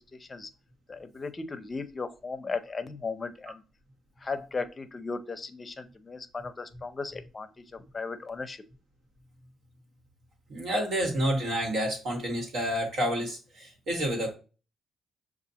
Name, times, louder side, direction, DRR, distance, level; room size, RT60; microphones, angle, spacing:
voice 1, 0.9-3.6 4.2-7.6 7.9-8.6, left 4 dB, 30° left, 10 dB, 0.6 m, -36 dB
voice 2, 10.5-14.3, equal, 70° right, 1 dB, 1.5 m, -29 dB
6.6 x 2.5 x 2.9 m, 0.34 s
cardioid pair, 90°, 0 cm